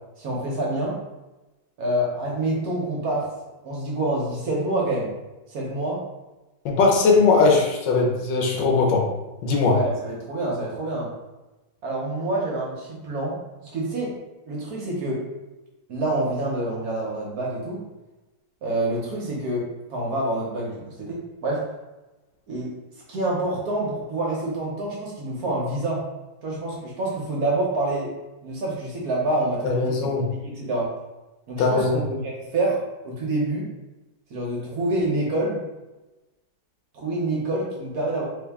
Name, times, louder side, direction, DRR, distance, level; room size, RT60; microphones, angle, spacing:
voice 1, 0.2-1.0 1.8-3.3 3.6-5.1 5.5-6.0 9.6-11.1 11.8-14.1 14.5-15.2 15.9-17.8 18.6-21.6 22.5-22.8 23.1-26.0 26.4-28.1 28.4-30.1 30.4-30.9 31.5-33.7 34.3-35.6 36.9-38.2, right 2 dB, 60° right, -3 dB, 1.2 m, -27 dB
voice 2, 6.6-9.0 9.4-9.8 29.6-30.3 31.6-31.9, left 4 dB, 75° left, 0 dB, 1.3 m, -19 dB
3.5 x 2.7 x 3.4 m, 1.1 s
omnidirectional pair, 2.1 m